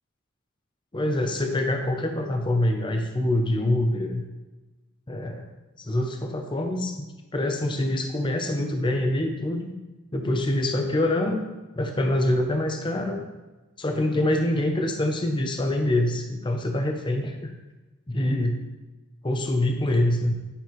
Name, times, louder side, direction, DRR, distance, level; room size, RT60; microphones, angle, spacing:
voice 1, 0.9-4.2 5.1-5.5 5.8-9.7 10.1-11.5 11.8-13.2 13.8-17.5 18.1-18.7 19.2-20.3, left 1 dB, 20° left, 4 dB, 0.6 m, -25 dB
9.8 x 6.8 x 3.1 m, 1.2 s
head